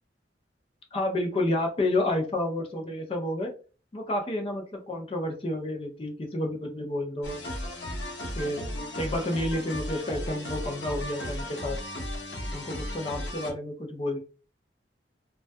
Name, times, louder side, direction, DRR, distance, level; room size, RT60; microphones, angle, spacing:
voice 1, 0.9-3.5 3.9-7.4 8.4-8.6 9.0-11.8 12.5-14.2, left 1 dB, 30° left, 2 dB, 0.4 m, -30 dB
sound 1, 7.2-13.5, left 1 dB, 70° left, 0.8 m, -35 dB
2.2 x 2.2 x 2.5 m, 0.37 s
head